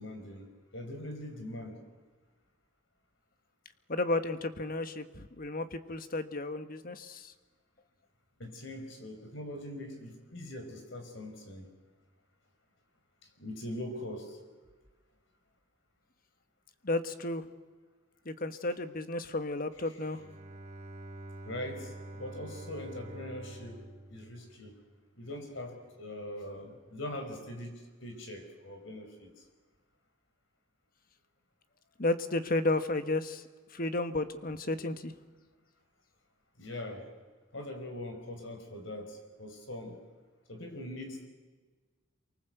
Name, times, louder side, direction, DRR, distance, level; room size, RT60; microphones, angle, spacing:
voice 1, 0.0-1.8 8.4-11.7 13.4-14.4 21.4-23.8 24.1-24.7 25.2-29.4 36.6-37.1 37.5-40.0 40.5-41.3, left 1 dB, 65° left, 5 dB, 5.3 m, -42 dB
voice 2, 3.9-7.3 16.8-17.4 18.2-20.2 32.0-33.4 33.7-35.2, left 2 dB, 45° left, 10 dB, 1.5 m, -33 dB
Bowed string instrument, 20.1-25.0, right 2 dB, 35° right, 2.3 m, -47 dB
27.5 x 24.0 x 8.0 m, 1.4 s
head